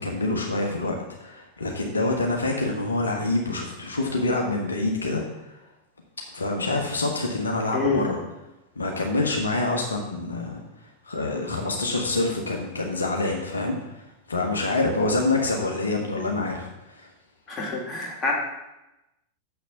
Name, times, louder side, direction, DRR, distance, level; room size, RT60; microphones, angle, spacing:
voice 1, 0.0-5.6 6.3-8.2 8.7-17.1, left 2 dB, 75° left, 1 dB, 1.2 m, -26 dB
voice 2, 7.7-8.0 17.5-18.3, left 3 dB, 25° left, -2 dB, 2.5 m, -26 dB
6.9 x 6.5 x 6.9 m, 0.96 s
figure-of-eight pair, 90°, 0 cm